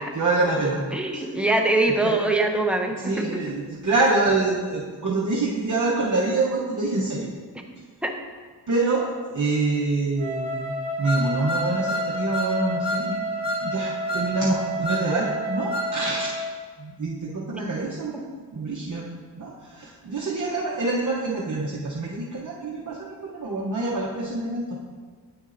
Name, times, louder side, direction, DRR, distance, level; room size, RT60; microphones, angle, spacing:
voice 1, 0.1-0.8 1.1-1.2 2.0-2.2 3.0-7.3 8.7-13.2 13.6-16.3 16.8-18.3 18.5-19.1 19.4-24.8, right 3 dB, 45° right, -5 dB, 0.8 m, -26 dB
voice 2, 0.9-3.4 8.0-8.1, right 2 dB, 5° right, 2 dB, 0.5 m, -23 dB
Wind instrument woodwind instrument, 10.2-16.6, right 1 dB, 30° right, 2.2 m, -30 dB
sound 1, 11.0-12.6 12.8-13.1 13.4-13.7 14.1-14.3 14.8-15.1 15.7-15.9, left 1 dB, 75° left, 1.4 m, -30 dB
8.7 x 7.0 x 2.5 m, 1.5 s
wide cardioid pair, 180°, 43 cm